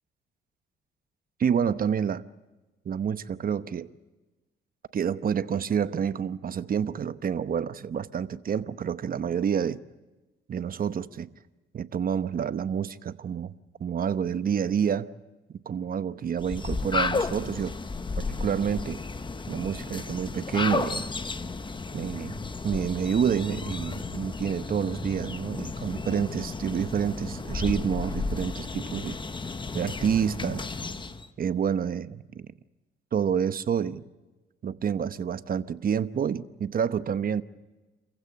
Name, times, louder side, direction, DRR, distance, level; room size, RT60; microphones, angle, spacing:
voice 1, 1.4-2.2 2.8-3.9 4.9-9.8 10.5-11.3 11.7-13.5 13.8-15.1 15.7-17.7 18.2-19.0 19.5-21.0 21.9-29.2 29.7-30.6 31.4-32.5 33.1-34.0 34.6-37.4, right 7 dB, 45° right, 0.9 m, -28 dB
sound 1, 16.4-31.3, left 3 dB, 25° left, 1.1 m, -33 dB
28.0 x 15.5 x 8.4 m
cardioid pair, 90°, 20 cm